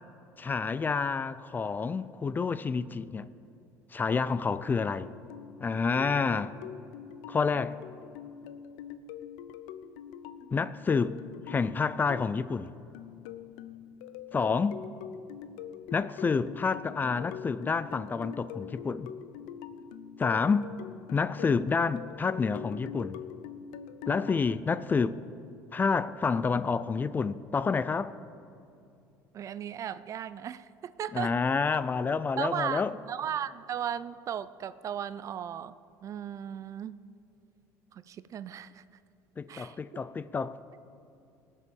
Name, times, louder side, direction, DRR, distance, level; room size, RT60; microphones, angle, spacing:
voice 1, 0.4-3.3 3.9-5.1 5.6-6.5 7.3-7.8 10.5-11.2 11.5-12.7 14.3-14.8 15.9-19.1 20.2-20.7 21.1-23.2 24.1-25.2 25.7-28.1 31.1-32.9 39.4-40.6, left 5 dB, 25° left, 0.4 m, -28 dB
sound 1, 5.0-24.4, left 8 dB, 85° left, 0.6 m, -44 dB
voice 2, 29.3-31.3 32.4-35.8 36.0-37.0 37.9-38.8 39.5-39.8, right 9 dB, 45° right, 0.5 m, -36 dB
18.0 x 6.8 x 7.1 m
supercardioid pair, 95°, 8 cm